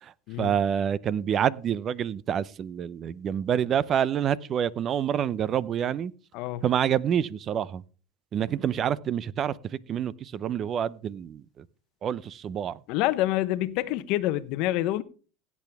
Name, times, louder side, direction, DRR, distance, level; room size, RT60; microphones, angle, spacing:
voice 1, 0.0-6.1 6.6-7.8 8.3-11.7 12.0-12.8, right 9 dB, 35° right, 0.6 m, -27 dB
voice 2, 12.9-15.0, left 15 dB, 60° left, 0.9 m, -27 dB
16.5 x 8.4 x 3.5 m
supercardioid pair, 125°, 0 cm